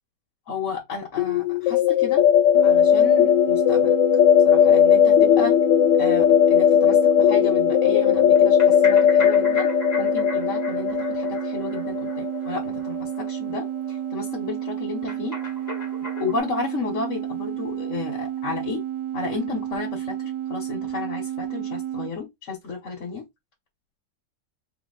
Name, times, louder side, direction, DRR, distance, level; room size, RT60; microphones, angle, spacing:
voice 1, 0.5-2.2 2.6-3.9 4.4-5.6 6.0-9.7 10.0-15.4 16.2-18.8 19.1-23.3, left 5 dB, 50° left, 1.3 m, -33 dB
sound 1, 1.2-12.9, left 9 dB, 85° left, 1.2 m, -18 dB
sound 2, 2.5-22.1, right 11 dB, 75° right, 1.2 m, -31 dB
sound 3, 8.4-12.9 13.2-13.3 13.5-13.6 13.9-14.0 15.1-16.4, left 3 dB, 10° left, 0.9 m, -37 dB
3.6 x 2.8 x 3.9 m
omnidirectional pair, 1.9 m